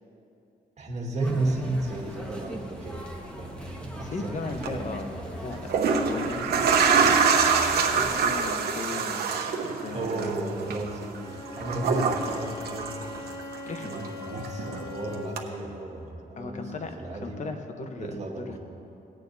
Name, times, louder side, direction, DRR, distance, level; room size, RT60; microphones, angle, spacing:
voice 1, 0.8-5.4 9.9-13.2 13.8-17.5 18.0-18.6, right 2 dB, 45° right, -1 dB, 1.8 m, -34 dB
sound 1, 1.2-8.3, equal, 5° left, 1.4 m, -40 dB
voice 2, 4.0-5.1 5.3-7.3 7.8-9.3 9.8-10.3 13.7-13.9 16.4-17.0 17.2-18.2 18.5-18.6, left 3 dB, 50° left, 5 dB, 1.0 m, -37 dB
sound 2, 4.5-4.7 5.5-13.6 13.9-14.9 15.4-15.5, right 5 dB, 80° right, 0.9 m, -25 dB
Bowed string instrument, 11.2-15.6, left 4 dB, 25° left, 0.9 m, -41 dB
18.5 x 8.6 x 2.7 m, 2.8 s
cardioid pair, 95°, 16 cm